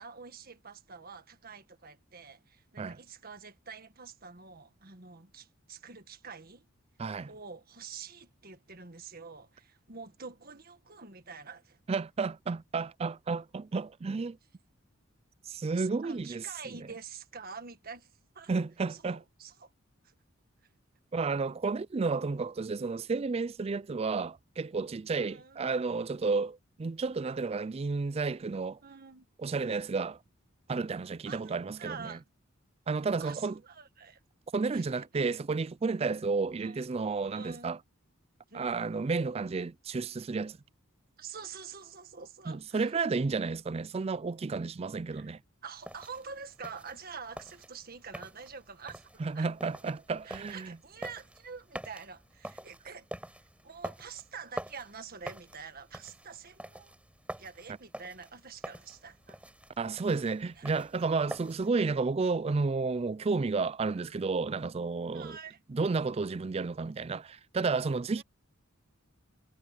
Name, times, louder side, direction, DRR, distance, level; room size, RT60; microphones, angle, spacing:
voice 1, 0.0-6.7 7.3-11.8 15.8-18.1 18.4-18.5 18.9-19.7 20.0-20.1 25.1-25.7 28.8-29.3 31.3-32.2 33.2-34.2 34.7-35.1 36.6-36.8 37.3-37.7 38.5-38.9 41.2-42.9 45.1-45.3 45.6-49.5 50.3-53.1 53.4-56.9 57.4-59.4 60.6-60.7 64.0-64.1 65.1-65.6 68.1-68.2, right 5 dB, 45° right, 1.8 m, -47 dB
voice 2, 11.9-14.4 15.5-16.4 18.5-19.2 21.1-28.8 29.4-30.2 30.7-32.2 32.9-33.6 34.5-37.8 38.5-40.6 42.5-45.4 49.2-50.8 59.8-65.4 65.7-68.2, right 4 dB, 30° right, 0.4 m, -32 dB
sound 1, 45.8-61.7, right 1 dB, 5° right, 4.4 m, -46 dB
head